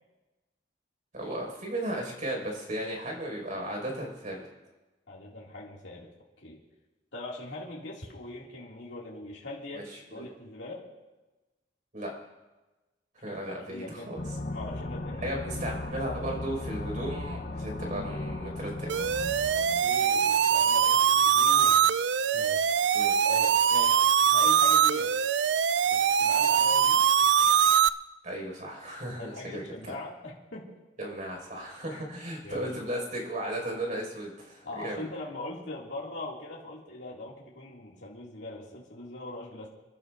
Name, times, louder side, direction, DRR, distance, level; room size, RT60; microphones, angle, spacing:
voice 1, 1.1-4.5 9.7-10.2 11.9-12.1 13.1-14.2 15.2-19.0 22.9-23.2 28.2-29.9 31.0-35.1, right 1 dB, 45° right, 0 dB, 5.2 m, -35 dB
voice 2, 5.1-6.1 6.4-6.6 7.1-9.9 10.1-10.9 13.3-13.4 13.7-14.1 14.5-15.3 19.5-21.9 22.3-22.7 23.2-24.0 24.3-25.1 25.9-27.0 29.2-30.8 31.9-32.2 32.4-32.7 34.6-39.7, left 2 dB, 80° left, -4 dB, 2.3 m, -41 dB
sound 1, 14.2-20.7, left 2 dB, 50° left, 0.8 m, -37 dB
sound 2, 18.9-27.9, right 8 dB, 75° right, 0.4 m, -23 dB
29.5 x 12.0 x 2.6 m, 1.1 s
head